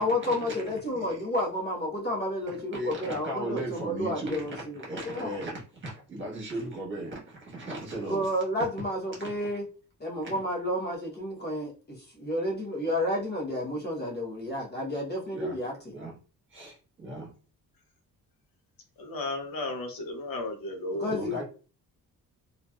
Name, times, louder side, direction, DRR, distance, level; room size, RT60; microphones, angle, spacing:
voice 1, 0.0-5.4 8.1-9.7 10.0-15.9 20.9-21.4, left 1 dB, 30° left, -2 dB, 0.9 m, -31 dB
voice 2, 2.7-8.3 15.3-15.5 15.9-16.1 16.5-17.3 21.1-21.4, right 1 dB, 35° right, -3 dB, 1.3 m, -36 dB
voice 3, 19.0-21.1, left 2 dB, 70° left, 5 dB, 0.7 m, -34 dB
2.9 x 2.4 x 2.3 m, 0.35 s
wide cardioid pair, 140°, 36 cm